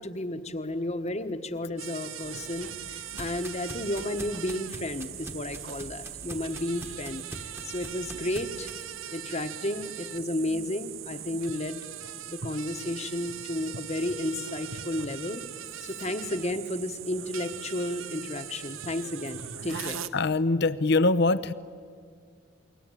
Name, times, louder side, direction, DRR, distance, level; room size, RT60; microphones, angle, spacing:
voice 1, 0.0-7.2 7.6-8.7 9.1-11.9 12.3-15.4 15.8-20.0, left 1 dB, 35° left, 9 dB, 1.3 m, -32 dB
sound 1, 1.8-20.1, right 9 dB, 80° right, 1.0 m, -40 dB
sound 2, 2.2-8.8, right 1 dB, 10° right, 1.4 m, -44 dB
voice 2, 20.1-21.5, left 3 dB, 55° left, 15 dB, 0.8 m, -23 dB
28.5 x 22.5 x 9.1 m, 2.1 s
head